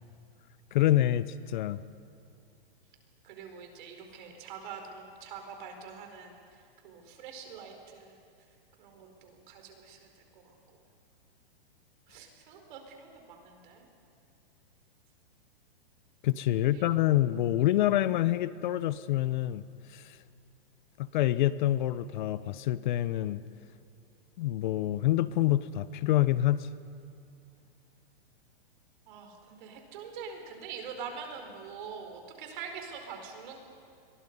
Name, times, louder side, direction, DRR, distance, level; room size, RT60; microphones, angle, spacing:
voice 1, 0.7-1.8 16.2-19.6 19.9-20.2 21.0-23.4 24.4-26.7, left 14 dB, 55° left, 16 dB, 0.7 m, -27 dB
voice 2, 3.2-6.4 6.8-8.1 8.8-10.1 10.3-10.5 12.1-13.9 16.7-16.8 29.1-33.6, right 6 dB, 55° right, 4 dB, 4.8 m, -44 dB
30.0 x 22.5 x 5.4 m, 2.5 s
hypercardioid pair, 135°, 30 cm